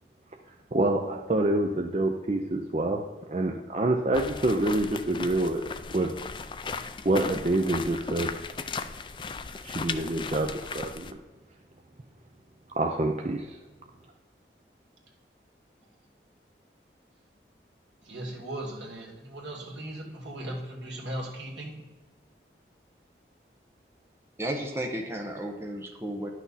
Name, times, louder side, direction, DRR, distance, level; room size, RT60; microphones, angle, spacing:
voice 1, 0.5-3.0 3.3-5.6 5.9-6.1 7.0-8.3 9.6-11.2 12.8-13.6, right 2 dB, 40° right, 2 dB, 0.5 m, -27 dB
sound 1, 4.1-11.1, left 4 dB, 25° left, 0.3 m, -37 dB
voice 2, 18.1-21.7, right 1 dB, 85° right, -1 dB, 2.1 m, -37 dB
voice 3, 24.4-26.3, right 1 dB, 15° right, 1 dB, 0.8 m, -33 dB
11.0 x 6.1 x 4.1 m, 1.3 s
head